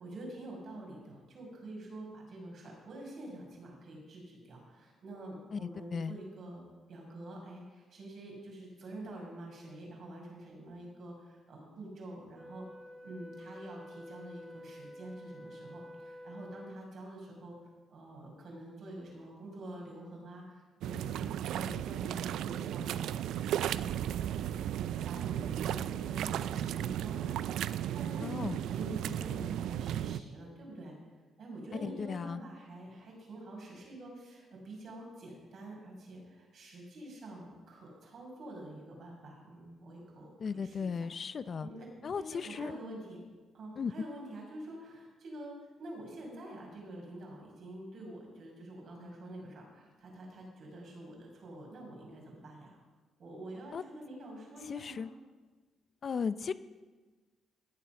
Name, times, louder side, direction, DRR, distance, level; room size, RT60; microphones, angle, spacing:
voice 1, 0.0-12.7 13.0-17.6 17.9-27.6 27.9-31.0 31.4-41.1 41.6-43.2 43.5-52.8 53.2-55.1, right 1 dB, 60° right, -1 dB, 5.4 m, -47 dB
voice 2, 5.5-6.2 28.2-28.6 31.8-32.4 40.4-41.7 42.0-42.7 43.8-43.9 53.7-53.8 54.7-55.1 56.0-56.5, left 6 dB, 45° left, 14 dB, 0.5 m, -36 dB
Wind instrument woodwind instrument, 12.3-17.0, left 1 dB, 5° right, 1.3 m, -49 dB
sound 1, 20.8-30.2, right 11 dB, 80° right, 0.3 m, -35 dB
17.5 x 7.5 x 5.8 m, 1.3 s
cardioid pair, 90°, 0 cm